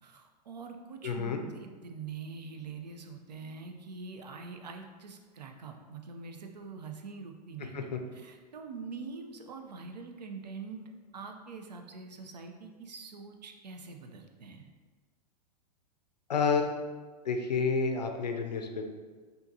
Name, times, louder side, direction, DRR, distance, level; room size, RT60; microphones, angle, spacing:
voice 1, 0.0-14.7, right 4 dB, 80° right, 4 dB, 0.6 m, -44 dB
voice 2, 1.0-1.4 7.7-8.0 16.3-16.8 17.2-18.9, left 5 dB, 85° left, 5 dB, 0.6 m, -29 dB
5.5 x 2.9 x 2.7 m, 1.4 s
hypercardioid pair, 105°, 21 cm